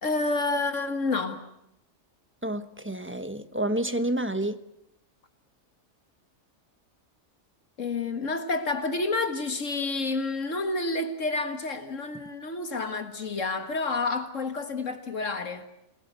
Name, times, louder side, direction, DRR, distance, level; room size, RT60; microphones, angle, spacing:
voice 1, 0.0-1.4 7.8-15.7, left 3 dB, 70° left, 2.0 m, -29 dB
voice 2, 2.4-4.6, right 1 dB, 10° right, 1.0 m, -29 dB
28.0 x 20.0 x 8.0 m
omnidirectional pair, 1.3 m